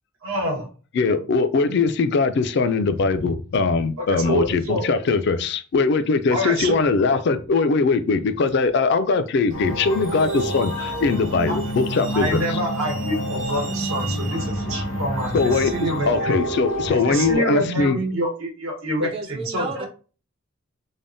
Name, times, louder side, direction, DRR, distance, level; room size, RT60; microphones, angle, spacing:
voice 1, 0.2-0.7 4.1-4.9 6.3-6.7 11.5-11.6 12.1-16.4 16.9-19.9, right 1 dB, 85° right, 0 dB, 1.1 m, -27 dB
voice 2, 0.9-12.6 15.3-18.0, left 4 dB, 55° left, 10 dB, 0.3 m, -21 dB
sound 1, 9.5-17.4, right 1 dB, 90° left, 0.9 m, -28 dB
Truck, 9.5-16.9, right 3 dB, 60° right, 0.7 m, -39 dB
voice 3, 19.0-19.9, right 3 dB, 25° right, 3 dB, 0.4 m, -32 dB
3.3 x 2.0 x 2.6 m, 0.36 s
head